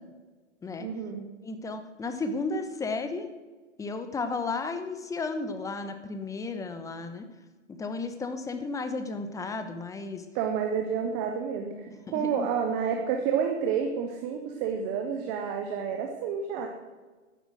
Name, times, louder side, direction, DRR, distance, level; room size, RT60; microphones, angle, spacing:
voice 1, 0.8-1.3 10.3-16.7, right 7 dB, 10° right, 4 dB, 0.3 m, -29 dB
voice 2, 1.4-3.3 3.8-7.3 7.7-10.2 12.1-12.5, left 3 dB, 10° left, 9 dB, 0.9 m, -33 dB
12.0 x 10.5 x 6.2 m, 1.3 s
hypercardioid pair, 120°, 38 cm